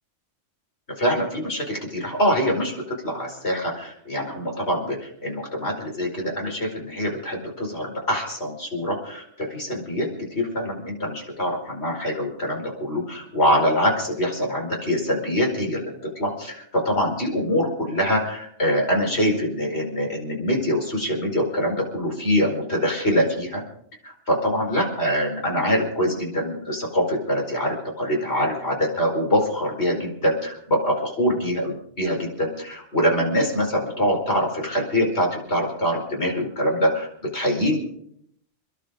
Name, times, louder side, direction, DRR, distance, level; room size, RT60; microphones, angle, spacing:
voice 1, 1.0-10.1 10.4-23.6 24.0-37.8, equal, 60° left, 1 dB, 5.3 m, -24 dB
29.0 x 11.5 x 3.8 m, 0.67 s
omnidirectional pair, 1.3 m